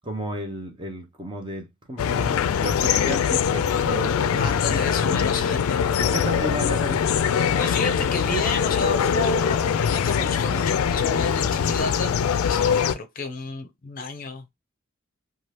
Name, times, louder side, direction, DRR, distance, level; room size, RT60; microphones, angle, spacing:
voice 1, 0.0-4.5 6.0-7.0, right 1 dB, 25° right, 0.7 m, -33 dB
sound 1, 2.0-12.9, left 7 dB, 90° left, 0.3 m, -22 dB
voice 2, 4.4-5.8 7.6-12.2 12.4-14.5, left 3 dB, 40° left, 0.5 m, -30 dB
2.8 x 2.3 x 3.3 m
head